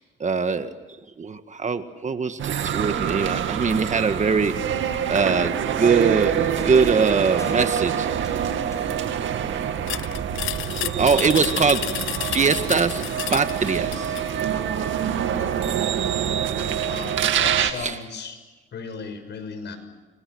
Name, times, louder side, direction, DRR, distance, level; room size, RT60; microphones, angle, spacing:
voice 1, 0.2-0.7 1.2-4.5 5.1-8.1 11.0-13.0 13.3-14.2 17.8-18.0, right 5 dB, 35° right, 9 dB, 1.8 m, -22 dB
sound 1, 2.4-17.7, right 9 dB, 70° right, 2.3 m, -26 dB
sound 2, 6.5-10.5, left 2 dB, 15° left, 5.7 m, -43 dB
sound 3, 9.9-14.3, left 14 dB, 85° left, 0.8 m, -31 dB
voice 2, 16.8-18.4 18.7-19.8, left 4 dB, 60° left, 8 dB, 6.5 m, -35 dB
30.0 x 24.5 x 6.4 m, 1.2 s
cardioid pair, 90°, 20 cm